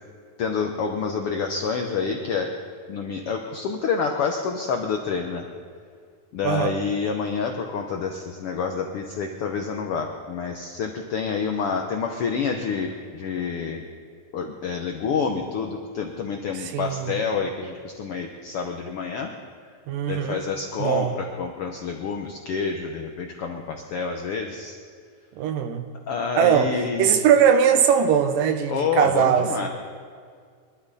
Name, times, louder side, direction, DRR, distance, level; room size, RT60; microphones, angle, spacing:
voice 1, 0.4-2.5 2.9-5.4 6.3-13.8 14.3-19.3 20.1-24.8 26.1-27.1 28.7-29.7, left 5 dB, 90° left, 3 dB, 1.2 m, -28 dB
voice 2, 6.4-6.7 16.6-17.2 19.9-20.4 20.8-21.1 25.4-25.8 26.4-26.7 27.0-29.7, right 8 dB, 90° right, 7 dB, 2.6 m, -20 dB
23.5 x 12.5 x 4.1 m, 2.1 s
omnidirectional pair, 3.8 m